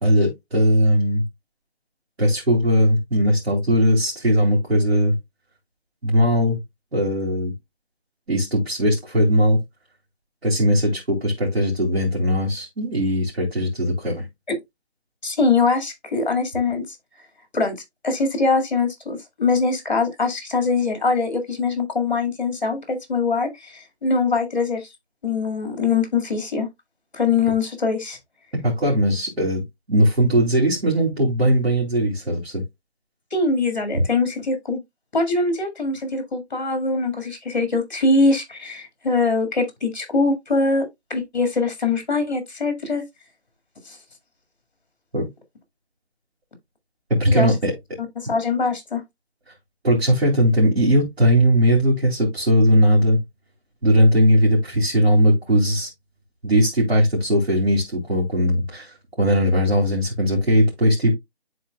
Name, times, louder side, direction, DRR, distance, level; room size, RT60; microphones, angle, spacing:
voice 1, 0.0-1.2 2.2-5.2 6.0-6.6 6.9-7.5 8.3-9.6 10.4-14.3 28.6-32.6 33.9-34.0 45.1-45.3 47.1-47.7 49.8-53.2 53.8-55.9 56.4-61.1, equal, 75° right, 2.9 m, -19 dB
voice 2, 15.2-16.8 17.5-17.8 18.0-24.9 25.2-26.7 27.1-28.2 33.3-34.8 35.1-43.0 43.9-44.0 47.3-47.5 48.2-49.0, left 3 dB, 40° left, 1.9 m, -22 dB
10.5 x 3.9 x 2.2 m
figure-of-eight pair, 175°, 32 cm